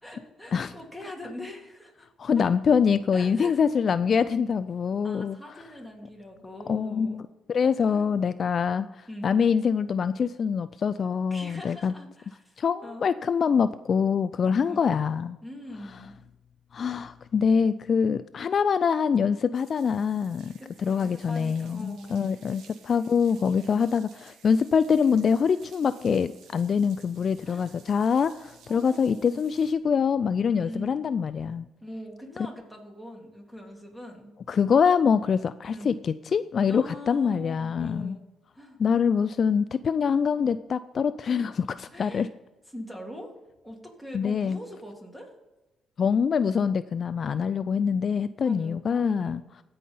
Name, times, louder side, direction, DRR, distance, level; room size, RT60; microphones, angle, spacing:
voice 1, 0.0-2.1 2.4-2.5 3.1-3.5 5.0-7.3 7.8-8.1 9.1-9.4 11.3-13.1 14.7-14.9 15.4-16.1 20.6-22.3 27.4-27.7 28.7-29.4 30.5-31.1 31.8-34.3 35.7-36.0 36.7-38.2 38.5-38.8 41.9-42.3 42.7-43.3 43.6-45.3 48.4-49.4, left 1 dB, ahead, 1 dB, 2.8 m, -42 dB
voice 2, 2.2-5.4 6.7-7.2 7.5-11.9 12.6-15.4 16.7-20.5 20.8-31.7 34.5-38.1 38.8-42.3 44.1-44.6 46.0-49.4, left 6 dB, 50° left, 14 dB, 0.3 m, -24 dB
sound 1, 19.5-29.7, right 6 dB, 80° right, 1.4 m, -56 dB
16.0 x 5.6 x 5.5 m, 1.1 s
cardioid pair, 90°, 0 cm